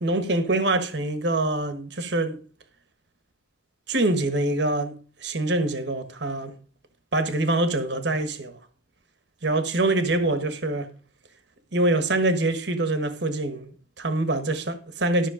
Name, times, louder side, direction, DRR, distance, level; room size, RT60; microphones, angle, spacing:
voice 1, 0.0-2.4 3.9-4.9 5.2-6.5 7.1-8.6 9.4-10.9 11.7-15.3, right 2 dB, 60° right, 1.3 m, -25 dB
13.0 x 6.2 x 5.0 m
head